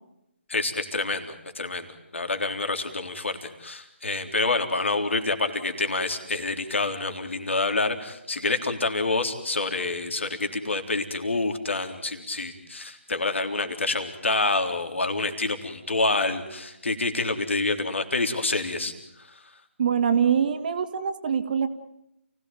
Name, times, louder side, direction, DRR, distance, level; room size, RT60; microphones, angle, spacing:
voice 1, 0.5-18.9 19.2-19.4, left 3 dB, 65° left, 6 dB, 3.9 m, -27 dB
voice 2, 19.8-21.7, right 7 dB, 40° right, 9 dB, 2.1 m, -23 dB
29.0 x 17.5 x 9.2 m, 0.86 s
figure-of-eight pair, 150°, 7 cm